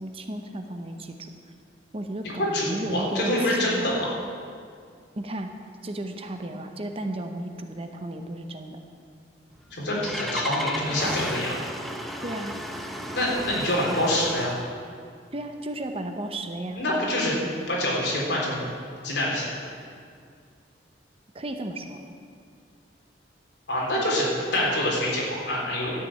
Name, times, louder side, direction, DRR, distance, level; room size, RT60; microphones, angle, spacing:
voice 1, 0.0-1.3 1.9-3.9 5.2-5.5 5.8-8.8 12.2-12.6 15.3-16.8 21.3-22.0, right 1 dB, 30° right, 5 dB, 0.8 m, -34 dB
voice 2, 2.5-4.1 9.7-11.5 13.1-14.5 16.8-17.4 17.7-18.6 19.0-19.7 23.7-25.9, left 1 dB, 65° left, -4 dB, 3.7 m, -26 dB
Engine starting, 9.5-14.7, equal, ahead, 0.8 m, -34 dB
12.5 x 6.8 x 8.8 m, 2.2 s
head